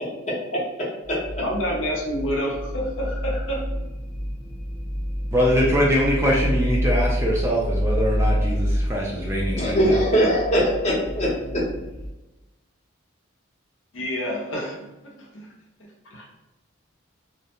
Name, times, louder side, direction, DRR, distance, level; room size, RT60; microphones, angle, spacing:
voice 1, 0.3-0.6 1.4-3.7 13.9-14.7 15.0-15.5 16.1-16.3, equal, 75° left, -1 dB, 0.6 m, -28 dB
sound 1, 1.0-12.1, equal, 45° right, 0.8 m, -28 dB
voice 2, 5.3-10.0, equal, 15° right, -4 dB, 0.4 m, -23 dB
voice 3, 9.6-11.6, equal, 35° left, -5 dB, 0.7 m, -21 dB
2.4 x 2.1 x 2.8 m, 1.0 s
head